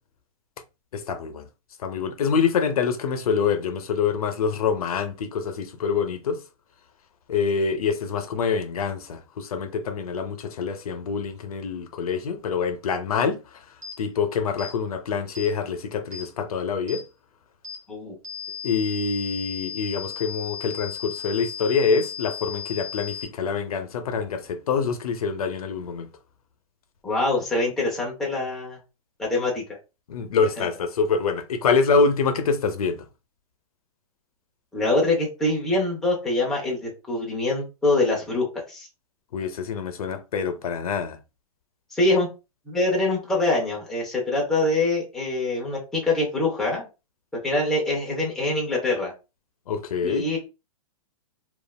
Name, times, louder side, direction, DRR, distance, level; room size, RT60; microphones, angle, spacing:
voice 1, 0.9-1.5 1.8-6.4 7.3-13.6 14.0-17.0 18.6-26.1 30.1-33.0 39.3-41.2 49.7-50.2, left 5 dB, 85° left, 0.6 m, -25 dB
sound 1, 13.8-14.0 14.6-14.7 15.3-15.5 16.1-16.3 16.9-17.0 17.6-17.8 18.2-23.2, left 8 dB, 50° right, 0.9 m, -36 dB
voice 2, 27.0-28.8 29.2-29.6 30.6-30.7 34.7-38.9 41.9-42.3 42.7-46.9 47.4-49.1 50.0-50.4, left 2 dB, ahead, 0.5 m, -24 dB
3.1 x 2.4 x 2.2 m
hypercardioid pair, 165°, 18 cm